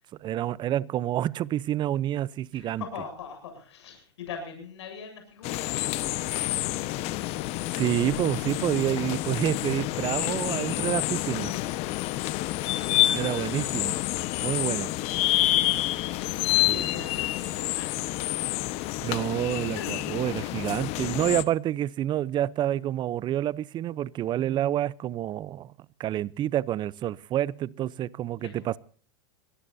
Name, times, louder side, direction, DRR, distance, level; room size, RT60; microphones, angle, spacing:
voice 1, 0.2-2.8 7.7-11.5 13.1-14.0 14.4-14.9 16.7-17.0 19.0-25.7 26.0-28.8, right 12 dB, 30° right, 0.8 m, -28 dB
voice 2, 2.5-6.7 16.1-17.9 19.7-19.9 28.4-28.7, left 6 dB, 80° left, 8.0 m, -43 dB
sound 1, 5.4-21.4, left 16 dB, 45° left, 1.3 m, -28 dB
24.0 x 18.5 x 2.8 m
hypercardioid pair, 120°, 14 cm